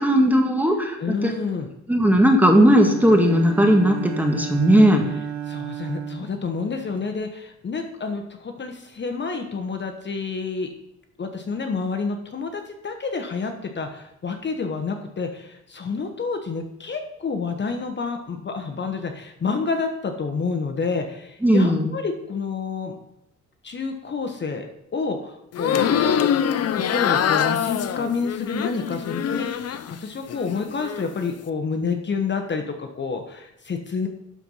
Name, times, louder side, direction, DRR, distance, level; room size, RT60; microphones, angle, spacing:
voice 1, 0.0-1.3 1.9-5.0 21.4-21.9, equal, 5° right, 3 dB, 1.7 m, -17 dB
voice 2, 1.0-1.7 5.5-10.7 11.2-23.0 23.6-24.7 24.9-26.1 26.7-34.1, left 4 dB, 35° left, 5 dB, 1.2 m, -29 dB
Bowed string instrument, 2.5-7.1, right 9 dB, 70° right, 1.1 m, -34 dB
sound 1, 25.5-30.0 30.3-31.0, left 9 dB, 55° left, 0.7 m, -24 dB
12.0 x 4.5 x 5.6 m, 0.83 s
cardioid pair, 90°, 30 cm